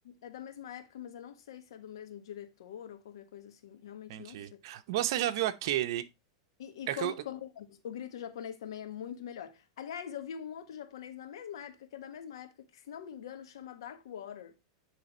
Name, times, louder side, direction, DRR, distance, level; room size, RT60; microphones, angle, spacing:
voice 1, 0.0-4.6 6.6-14.5, left 9 dB, 80° left, 1.3 m, -43 dB
voice 2, 4.1-6.1 6.9-7.1, right 13 dB, 65° right, 0.7 m, -32 dB
9.3 x 3.4 x 4.2 m
hypercardioid pair, 125°, 3 cm